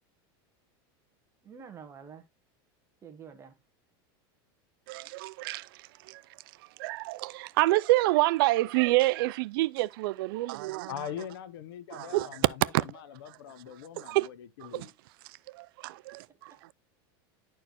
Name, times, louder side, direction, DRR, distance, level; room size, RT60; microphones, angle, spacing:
voice 1, 1.4-2.2 3.0-3.5 16.3-16.7, right 7 dB, 20° right, 1.4 m, -48 dB
voice 2, 4.9-5.7 6.1-6.2 6.8-10.9 11.9-12.3 12.7-12.8 14.0-14.3 14.7-14.9 15.5-16.7, right 19 dB, 70° right, 0.4 m, -27 dB
voice 3, 10.9-14.9, left 10 dB, 85° left, 0.8 m, -42 dB
11.0 x 4.5 x 2.9 m
supercardioid pair, 140°, 12 cm